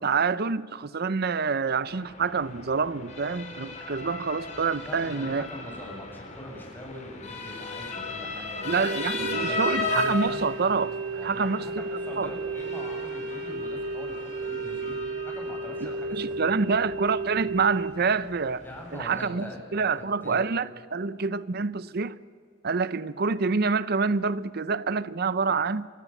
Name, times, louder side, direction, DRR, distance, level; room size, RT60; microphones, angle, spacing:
voice 1, 0.0-5.5 8.7-10.9 11.2-11.6 12.2-12.3 15.8-18.6 18.9-22.2 22.6-25.9, right 4 dB, 55° right, 17 dB, 0.7 m, -27 dB
Motor vehicle (road) / Siren, 1.9-19.3, left 3 dB, 35° left, 3.5 m, -37 dB
voice 2, 4.8-8.7 9.1-9.7 11.1-16.7 18.6-20.5, left 1 dB, 10° left, -1 dB, 7.4 m, -42 dB
sound 1, 8.8-17.9, right 3 dB, 70° right, 1.3 m, -33 dB
29.0 x 25.5 x 7.2 m, 2.1 s
head